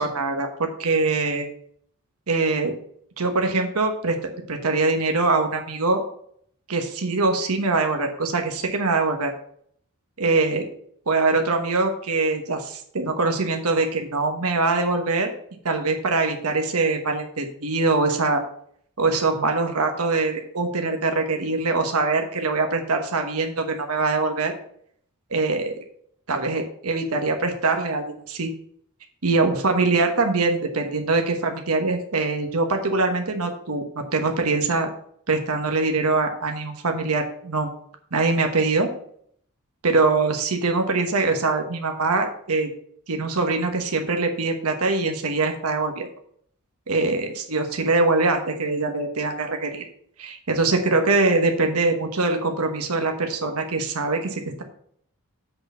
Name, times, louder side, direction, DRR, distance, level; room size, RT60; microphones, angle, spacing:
voice 1, 0.0-1.5 2.3-2.7 3.2-4.1 4.5-6.0 6.7-9.3 10.2-10.6 11.1-15.3 15.6-18.4 19.0-24.6 25.3-25.7 26.3-28.5 29.2-33.8 34.1-34.9 35.3-37.7 38.1-38.9 39.8-42.7 43.1-46.1 46.9-49.8 50.2-54.6, right 3 dB, 80° right, 4 dB, 1.2 m, -23 dB
7.8 x 4.3 x 6.8 m, 0.63 s
head